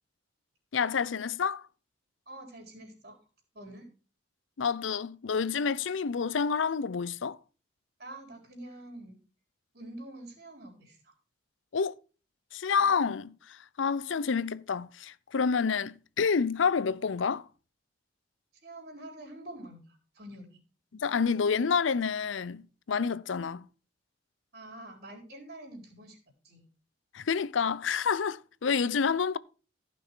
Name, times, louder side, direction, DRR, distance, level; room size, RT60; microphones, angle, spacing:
voice 1, 0.7-1.6 4.6-7.4 11.7-11.9 12.5-17.4 20.9-23.7 27.1-29.4, left 6 dB, 90° left, 0.6 m, -28 dB
voice 2, 2.3-3.2 3.5-3.9 8.0-9.2 9.7-11.1 18.6-20.6 24.5-26.2 26.4-26.6, right 1 dB, 55° right, 4.2 m, -46 dB
15.0 x 6.1 x 4.5 m
head